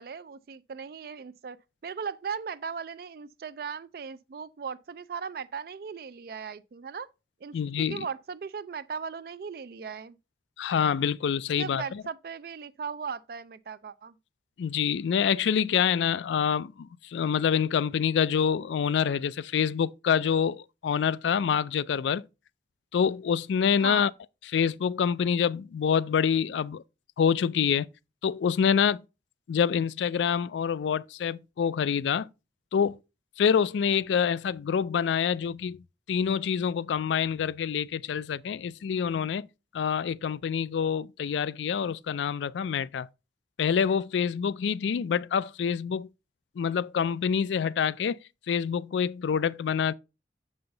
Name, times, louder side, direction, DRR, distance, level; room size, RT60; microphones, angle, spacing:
voice 1, 0.0-1.6 1.8-7.1 7.4-10.2 11.5-14.1 23.8-24.1, right 6 dB, 55° right, 0.4 m, -37 dB
voice 2, 7.5-8.1 10.6-12.0 14.6-22.2 22.9-24.1 24.5-26.8 27.2-27.9 28.2-29.0 29.5-32.3 32.7-33.0 33.4-35.8 36.1-39.5 39.7-43.1 43.6-46.1 46.6-48.2 48.5-49.9, left 7 dB, 85° left, 0.3 m, -26 dB
6.8 x 5.5 x 3.8 m
head